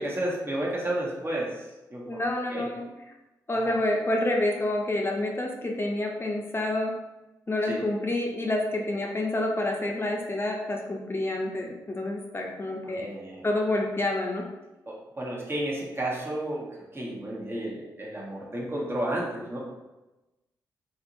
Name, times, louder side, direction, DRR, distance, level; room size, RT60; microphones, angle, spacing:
voice 1, 0.0-2.2 2.5-2.7 3.5-3.7 7.6-7.8 12.8-13.5 14.9-16.7 16.9-19.6, right 1 dB, 25° right, -4 dB, 1.0 m, -32 dB
voice 2, 2.1-2.9 3.5-6.9 7.5-13.1 13.4-14.5, left 1 dB, 25° left, 0 dB, 0.7 m, -28 dB
2.8 x 2.6 x 2.5 m, 1.0 s
hypercardioid pair, 40°, 9 cm